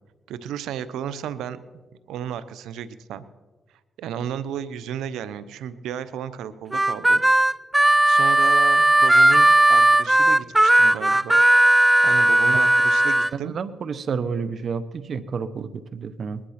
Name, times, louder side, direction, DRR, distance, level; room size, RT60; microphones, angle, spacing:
voice 1, 0.3-1.6 2.1-3.2 4.0-7.2 8.0-11.4 12.0-13.5, right 9 dB, 90° right, 14 dB, 0.8 m, -33 dB
Harmonica, 6.7-13.3, right 1 dB, 10° right, 0.5 m, -16 dB
voice 2, 13.4-16.4, right 5 dB, 55° right, 14 dB, 0.9 m, -30 dB
20.5 x 11.0 x 5.9 m, 1.3 s
cardioid pair, 80°, 0 cm